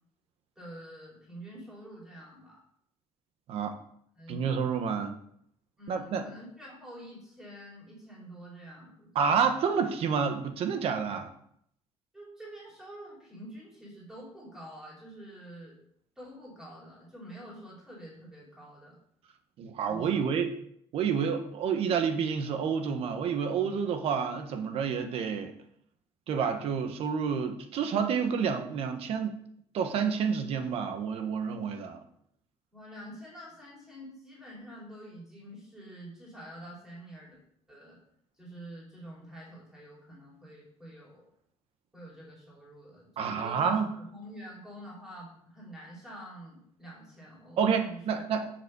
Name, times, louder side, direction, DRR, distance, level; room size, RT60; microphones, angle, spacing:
voice 1, 0.6-2.6 4.1-4.6 5.8-9.1 12.1-15.8 16.2-19.0 19.9-20.3 32.7-37.4 37.7-38.0 38.4-41.3 41.9-48.5, right 1 dB, 5° right, -5 dB, 4.6 m, -47 dB
voice 2, 4.3-5.2 5.9-6.3 9.1-11.3 19.6-20.5 20.9-25.5 26.3-29.4 29.7-32.0 43.2-43.9 47.6-48.5, right 6 dB, 55° right, 7 dB, 1.3 m, -29 dB
7.5 x 7.0 x 7.0 m, 0.69 s
cardioid pair, 180°, 12 cm